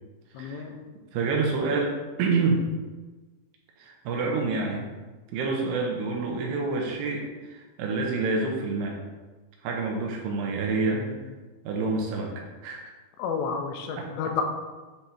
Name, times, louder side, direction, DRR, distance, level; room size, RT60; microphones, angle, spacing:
voice 1, 0.3-0.8 10.9-11.3 13.2-14.4, left 6 dB, 85° left, 4 dB, 3.0 m, -31 dB
voice 2, 1.1-1.9 2.2-2.7 3.8-4.9 5.3-9.0 9.6-11.0 11.6-12.9 14.0-14.1, right 3 dB, 75° right, 1 dB, 2.8 m, -27 dB
9.3 x 3.4 x 4.3 m, 1.3 s
omnidirectional pair, 5.1 m